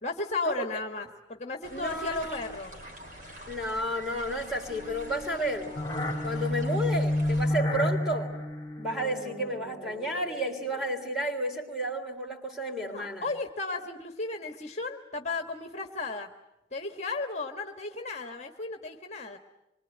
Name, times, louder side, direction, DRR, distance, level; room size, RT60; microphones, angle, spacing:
voice 1, 0.0-2.7 12.8-16.3 16.7-19.4, left 3 dB, 35° left, 5 dB, 1.4 m, -34 dB
sound 1, 1.6-7.5, equal, 45° right, 4.5 m, -46 dB
voice 2, 1.7-2.4 3.5-5.8 6.2-8.3 8.8-13.3, right 1 dB, 5° right, 1 dB, 3.5 m, -32 dB
sound 2, 4.7-11.1, left 1 dB, 20° left, 2.9 m, -31 dB
26.5 x 23.5 x 9.1 m, 0.93 s
head